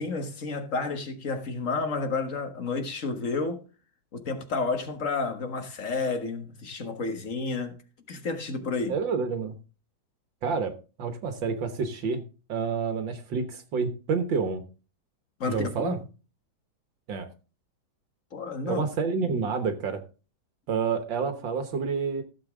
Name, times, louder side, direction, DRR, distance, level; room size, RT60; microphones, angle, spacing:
voice 1, 0.0-3.6 4.1-7.8 8.1-9.0 15.4-15.9 18.3-18.8 19.2-19.4, left 4 dB, 45° left, 1.6 m, -31 dB
voice 2, 8.9-9.6 10.4-10.7 11.0-12.2 12.5-14.6 15.4-16.0 17.1-17.3 18.7-20.0 20.7-22.2, right 5 dB, 70° right, 1.9 m, -28 dB
15.5 x 7.3 x 3.6 m
omnidirectional pair, 2.2 m